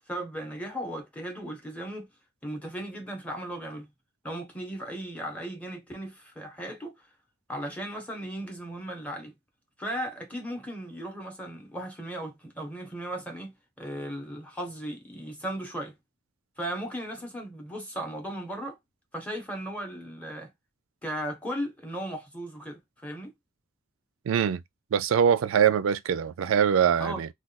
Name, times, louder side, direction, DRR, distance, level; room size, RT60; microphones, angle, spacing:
voice 1, 0.1-2.1 2.4-3.9 4.2-6.9 7.5-9.3 9.8-16.0 16.6-18.8 19.1-20.5 21.0-23.3 27.0-27.2, right 1 dB, 5° left, 0.9 m, -36 dB
voice 2, 24.3-24.6 24.9-27.3, right 8 dB, 70° right, 0.3 m, -23 dB
2.4 x 2.2 x 3.9 m
head